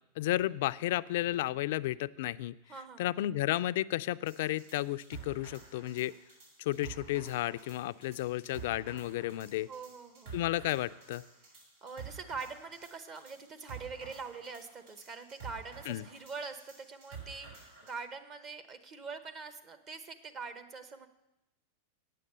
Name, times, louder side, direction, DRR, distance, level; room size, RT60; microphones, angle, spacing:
voice 1, 0.2-2.6 3.0-6.1 6.6-9.7 10.3-11.2 15.9-16.0, left 15 dB, 65° left, 15 dB, 0.3 m, -32 dB
voice 2, 2.7-3.1 9.7-10.4 11.8-21.1, right 4 dB, 35° right, 9 dB, 0.9 m, -44 dB
sound 1, 4.3-18.0, right 6 dB, 80° right, 5.0 m, -50 dB
8.8 x 8.5 x 6.7 m, 0.91 s
hypercardioid pair, 120°, 0 cm